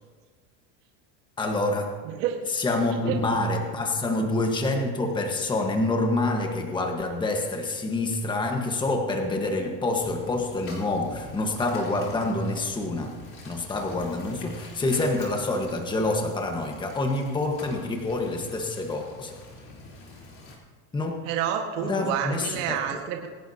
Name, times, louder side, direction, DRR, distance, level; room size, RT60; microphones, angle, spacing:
voice 1, 1.4-2.0 2.5-13.1 13.4-19.4 20.9-21.1 21.8-23.0, left 2 dB, 10° left, 2 dB, 1.4 m, -27 dB
voice 2, 2.0-2.4 3.1-3.2 21.2-23.3, right 9 dB, 80° right, 2 dB, 1.7 m, -28 dB
sound 1, 10.0-20.6, left 2 dB, 35° left, 3.8 m, -45 dB
25.5 x 11.0 x 2.9 m, 1.5 s
supercardioid pair, 140°, 38 cm